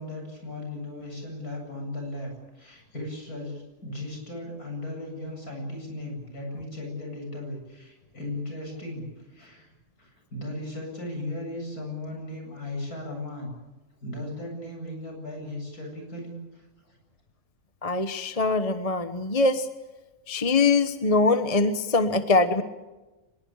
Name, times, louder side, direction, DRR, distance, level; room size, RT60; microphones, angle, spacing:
voice 1, 0.0-2.3 2.5-9.7 10.0-13.5 14.0-16.9, left 1 dB, 80° left, 2 dB, 8.6 m, -37 dB
voice 2, 17.8-19.7 20.3-22.6, left 3 dB, 25° left, 9 dB, 1.1 m, -23 dB
24.5 x 21.5 x 8.9 m, 1.1 s
omnidirectional pair, 1.6 m